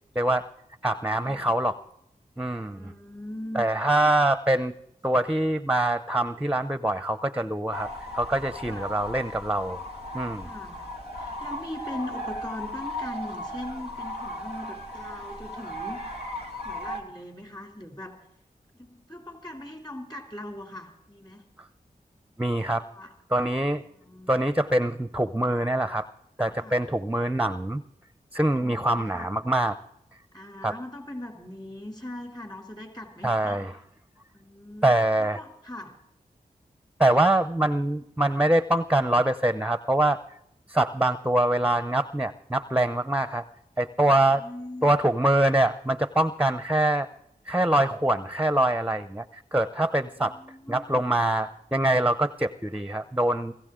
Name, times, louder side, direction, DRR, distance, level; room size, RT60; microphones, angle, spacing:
voice 1, 0.2-0.5 0.8-1.8 2.4-2.9 3.5-4.7 5.0-7.9 8.1-9.8 10.1-10.5 22.4-22.9 23.3-23.8 24.3-26.1 26.4-27.8 28.3-29.8 30.6-30.7 33.2-33.7 34.8-35.4 37.0-40.2 40.7-43.4 43.8-44.4 44.8-47.1 47.5-50.3 50.7-53.5, right 1 dB, 10° right, 13 dB, 0.6 m, -24 dB
voice 2, 2.8-3.7 4.0-4.1 8.6-9.0 10.3-16.3 16.6-18.2 18.7-21.4 22.7-23.1 23.9-24.3 26.6-26.8 28.6-29.3 30.3-33.7 34.3-36.0 44.1-44.9 50.2-51.0, left 1 dB, 25° left, 2 dB, 3.0 m, -40 dB
sound 1, 7.7-17.0, left 1 dB, 90° left, 2.4 m, -36 dB
24.0 x 14.5 x 3.7 m, 0.78 s
cardioid pair, 40°, 16 cm